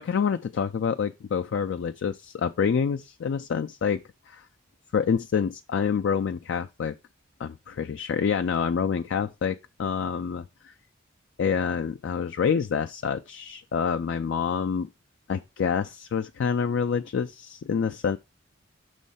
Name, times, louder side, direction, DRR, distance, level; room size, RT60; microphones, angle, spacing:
voice 1, 0.0-4.0 4.3-4.4 4.9-7.0 7.4-10.7 11.4-14.9 15.3-18.2, left 6 dB, 60° left, 0.3 m, -27 dB
6.3 x 3.1 x 5.4 m
head